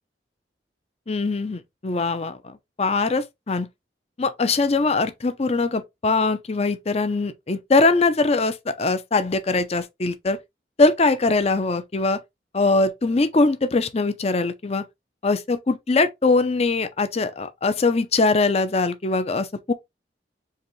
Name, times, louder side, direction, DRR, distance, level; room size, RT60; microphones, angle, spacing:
voice 1, 1.1-3.7 4.2-10.4 10.8-12.2 12.5-14.8 15.2-19.7, left 3 dB, 35° left, 0.6 m, -22 dB
4.8 x 3.2 x 3.1 m
head